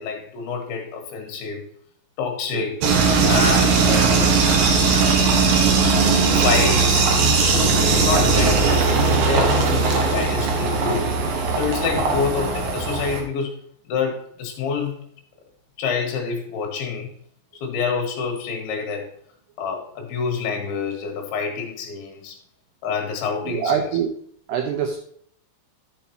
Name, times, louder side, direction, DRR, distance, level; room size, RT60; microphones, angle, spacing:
voice 1, 0.0-1.6 2.2-2.8 3.2-4.3 6.1-7.1 7.4-11.1 11.6-13.6 13.9-15.0 15.8-17.1 17.5-19.1 19.6-22.4 22.8-23.9, left 5 dB, 75° left, 1 dB, 3.8 m, -27 dB
sound 1, 2.8-13.2, right 4 dB, 65° right, 2.3 m, -18 dB
voice 2, 23.5-24.1 24.5-25.0, right 7 dB, 85° right, 5 dB, 2.4 m, -24 dB
11.5 x 7.1 x 2.9 m, 0.64 s
omnidirectional pair, 5.7 m